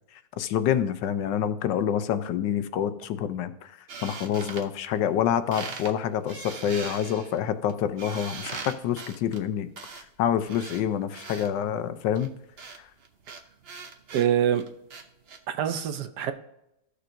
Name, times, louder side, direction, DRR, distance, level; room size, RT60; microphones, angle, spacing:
voice 1, 0.1-12.3 12.8-12.9, left 9 dB, 80° left, 11 dB, 1.3 m, -27 dB
sound 1, 3.9-5.2 5.5-5.9 6.3-11.5 12.1-15.4, right 5 dB, 50° right, 0.7 m, -41 dB
voice 2, 14.1-14.6 15.5-16.3, right 9 dB, 70° right, 9 dB, 1.2 m, -25 dB
14.0 x 6.7 x 2.6 m, 0.84 s
omnidirectional pair, 1.9 m